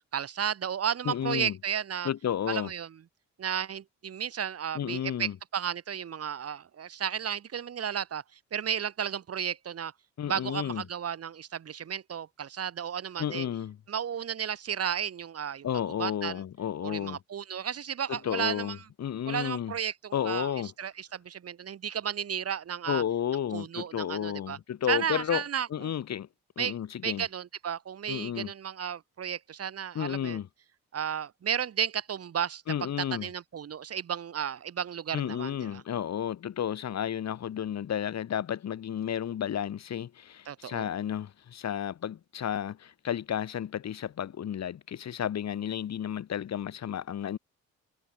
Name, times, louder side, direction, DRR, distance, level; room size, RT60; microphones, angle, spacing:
voice 1, 0.1-2.1 2.5-3.0 3.4-8.2 8.5-9.9 10.2-13.5 13.9-15.7 16.0-16.4 16.8-18.8 19.3-20.5 20.8-23.0 23.5-24.6 24.9-25.9 26.6-26.8 27.0-30.4 30.9-32.9 33.2-35.8 40.5-40.9, right 8 dB, 50° right, 2.5 m, -33 dB
voice 2, 1.1-1.6 2.0-2.7 4.7-5.4 10.2-10.8 13.2-13.8 15.6-17.2 18.1-19.7 20.1-20.7 22.9-25.4 25.7-26.3 26.6-27.3 28.1-28.5 29.9-30.5 32.7-33.3 35.1-47.4, left 9 dB, 60° left, 3.8 m, -32 dB
cardioid pair, 90°, 30 cm